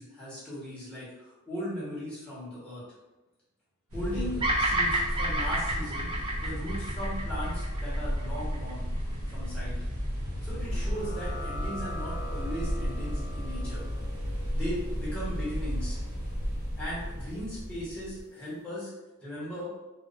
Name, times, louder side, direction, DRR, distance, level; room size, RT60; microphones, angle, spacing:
voice 1, 0.0-2.8 3.9-6.1 6.4-8.8 9.3-9.7 10.4-13.8 14.5-16.0 16.8-18.9 19.2-19.7, equal, 5° left, -8 dB, 1.1 m, -37 dB
sound 1, 3.9-18.2, equal, 65° right, 0.7 m, -33 dB
Bird vocalization bird call bird song, 4.4-8.7, right 1 dB, 25° right, 0.3 m, -30 dB
sound 2, 10.7-17.9, left 1 dB, 40° left, 0.7 m, -45 dB
2.4 x 2.1 x 2.4 m, 1.1 s
head